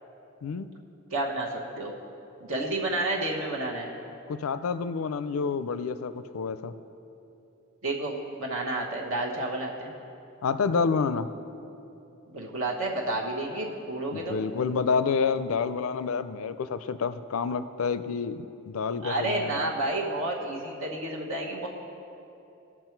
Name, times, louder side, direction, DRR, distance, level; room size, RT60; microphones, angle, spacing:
voice 1, 1.1-1.5 1.8-1.9 2.4-3.9 7.8-9.9 12.3-14.4 19.0-21.7, right 2 dB, 65° right, -1 dB, 1.1 m, -30 dB
voice 2, 4.3-6.7 10.4-11.3 14.1-19.7, left 5 dB, 70° left, 12 dB, 0.4 m, -28 dB
17.5 x 6.0 x 4.5 m, 2.8 s
head